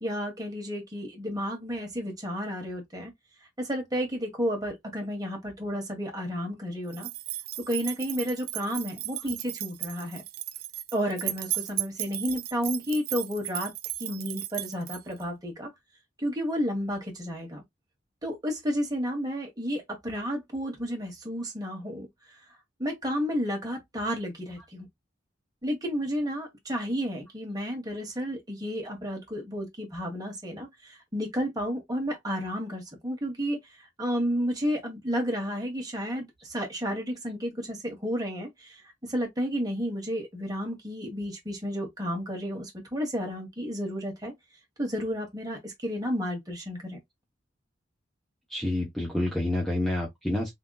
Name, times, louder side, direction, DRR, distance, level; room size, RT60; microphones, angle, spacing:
voice 1, 0.0-3.1 3.6-7.1 7.6-10.2 10.9-13.7 14.0-15.7 16.2-17.6 18.2-22.4 22.8-24.9 25.6-44.3 44.8-47.0, equal, 20° right, 1.6 m, -32 dB
sound 1, 6.9-15.2, right 14 dB, 55° right, 0.5 m, -35 dB
voice 2, 48.5-50.5, left 1 dB, ahead, 0.9 m, -28 dB
3.8 x 3.4 x 2.3 m
head